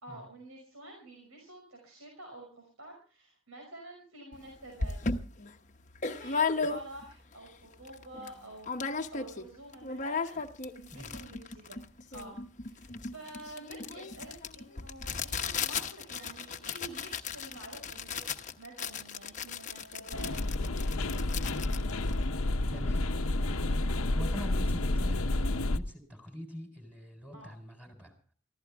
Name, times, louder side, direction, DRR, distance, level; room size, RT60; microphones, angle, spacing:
voice 1, 0.0-5.0 6.0-11.8 12.1-20.7 21.4-22.3 27.3-27.5, right 2 dB, 85° right, 1 dB, 5.6 m, -49 dB
sound 1, 4.3-4.4 4.8-7.2 7.6-7.7 7.9-8.3 8.6-9.5 9.7-22.8, left 4 dB, 40° left, 1.0 m, -36 dB
sound 2, 20.1-25.8, left 2 dB, 75° left, 0.9 m, -30 dB
voice 2, 22.7-23.1 24.1-28.1, equal, 5° right, 5 dB, 4.2 m, -44 dB
23.5 x 15.0 x 3.5 m, 0.38 s
head